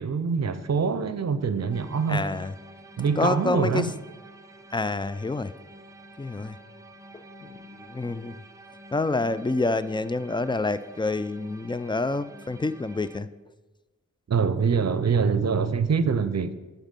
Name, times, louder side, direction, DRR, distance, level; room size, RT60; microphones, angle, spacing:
voice 1, 0.0-2.3 3.0-3.9 14.3-16.5, right 5 dB, 60° right, 0.6 m, -24 dB
sound 1, 1.7-13.2, right 1 dB, 10° right, 0.8 m, -48 dB
voice 2, 2.1-2.5 3.2-3.9 4.7-5.5 6.2-6.6 7.1-8.3 8.9-13.3, left 3 dB, 15° left, 0.4 m, -28 dB
11.5 x 4.1 x 5.3 m
cardioid pair, 50°, 29 cm